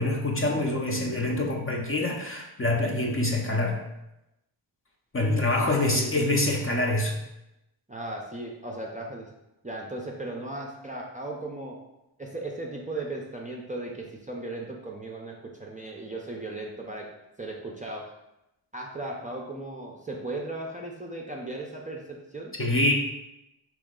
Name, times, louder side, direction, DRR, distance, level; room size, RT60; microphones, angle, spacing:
voice 1, 0.0-3.8 5.1-7.2 22.6-22.9, left 2 dB, 25° left, 0 dB, 0.6 m, -25 dB
voice 2, 5.2-6.2 7.9-9.3 9.6-11.8 12.2-17.1 17.4-18.1 18.7-22.5, right 2 dB, 15° right, -2 dB, 0.5 m, -36 dB
4.4 x 3.1 x 3.7 m, 0.90 s
wide cardioid pair, 95°, 49 cm